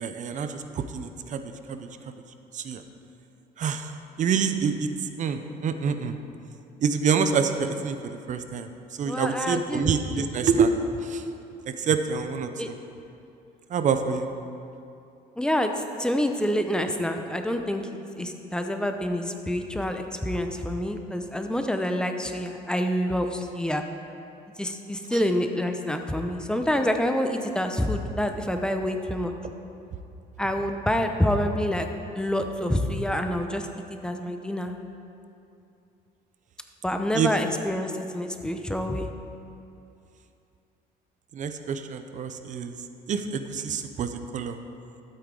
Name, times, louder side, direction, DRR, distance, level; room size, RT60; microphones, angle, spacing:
voice 1, 0.0-1.4 1.7-2.1 2.5-2.8 3.6-3.9 4.2-4.9 5.2-6.2 6.8-8.7 9.0-10.7 11.0-11.2 11.7-12.7 13.7-14.3 25.1-25.2 37.1-37.3 41.3-42.7 43.1-44.6, right 6 dB, 45° right, 8 dB, 0.7 m, -27 dB
voice 2, 9.1-9.9 12.6-12.7 15.4-15.7 16.0-17.9 18.2-23.8 24.6-29.3 30.4-31.9 32.1-33.6 34.0-34.7 36.8-39.1, left 1 dB, 5° left, 5 dB, 0.7 m, -27 dB
12.0 x 8.5 x 3.8 m, 2.7 s
cardioid pair, 110°, 17 cm